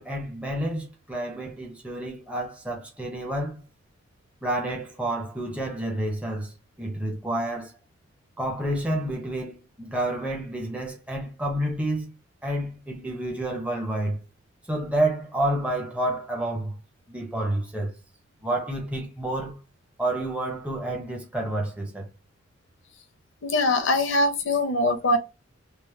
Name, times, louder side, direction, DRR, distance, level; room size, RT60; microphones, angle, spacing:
voice 1, 0.0-3.6 4.4-7.7 8.4-12.1 12.4-14.2 14.7-16.7 17.1-17.9 18.4-19.6 20.0-22.1, right 1 dB, 5° right, 0.7 m, -29 dB
voice 2, 23.4-25.2, left 2 dB, 70° left, 0.8 m, -22 dB
3.1 x 2.1 x 3.1 m
head